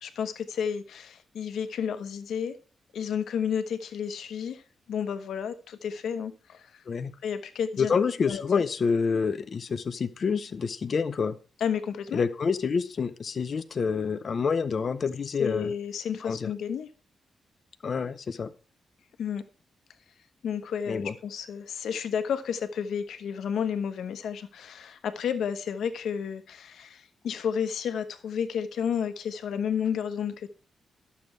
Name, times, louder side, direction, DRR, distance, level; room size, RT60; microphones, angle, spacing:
voice 1, 0.0-2.6 2.9-4.6 4.9-6.8 7.2-8.6 11.6-12.2 15.4-16.9 19.2-19.4 20.4-30.5, left 7 dB, 90° left, 1.0 m, -31 dB
voice 2, 7.8-11.4 12.1-15.7 16.2-16.5 17.8-18.5 20.9-21.1, left 5 dB, 45° left, 0.6 m, -27 dB
12.0 x 6.9 x 4.6 m
wide cardioid pair, 150°, 0 cm